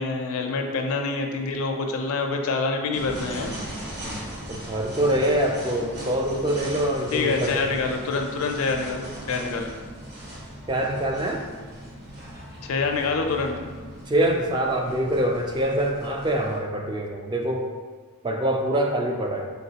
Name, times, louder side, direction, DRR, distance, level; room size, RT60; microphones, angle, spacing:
voice 1, 0.0-3.5 7.1-9.7 12.6-13.6, left 4 dB, 70° left, 3 dB, 0.5 m, -26 dB
sound 1, 2.9-16.6, equal, 45° right, 1.1 m, -39 dB
voice 2, 4.5-7.7 10.7-11.4 14.1-17.7 18.2-19.4, right 1 dB, 20° right, 1 dB, 0.3 m, -24 dB
3.9 x 3.6 x 2.8 m, 1.5 s
head